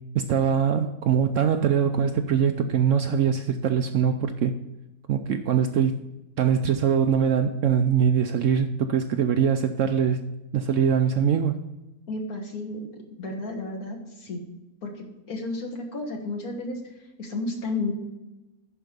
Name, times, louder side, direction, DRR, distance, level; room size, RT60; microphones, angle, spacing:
voice 1, 0.1-4.5 5.1-6.0 6.4-10.2 10.5-11.6, right 7 dB, 65° right, 0.8 m, -22 dB
voice 2, 12.1-14.4 14.8-16.8 17.2-17.9, left 2 dB, 65° left, 2.0 m, -32 dB
11.0 x 4.7 x 5.1 m
omnidirectional pair, 1.7 m